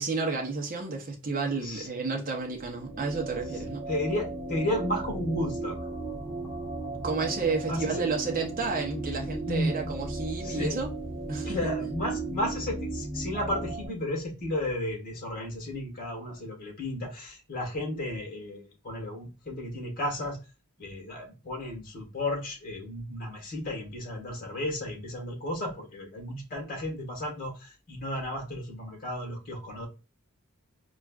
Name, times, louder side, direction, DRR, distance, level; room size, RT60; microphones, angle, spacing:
voice 1, 0.0-3.9 7.0-10.9 11.3-11.7, right 4 dB, 40° right, 0.7 m, -31 dB
sound 1, 2.4-13.9, right 2 dB, 5° left, 1.1 m, -36 dB
voice 2, 3.9-5.8 7.6-8.0 9.5-9.9 10.4-10.8 11.4-20.4 20.8-29.9, left 1 dB, 40° left, 1.4 m, -33 dB
4.3 x 2.3 x 2.4 m
head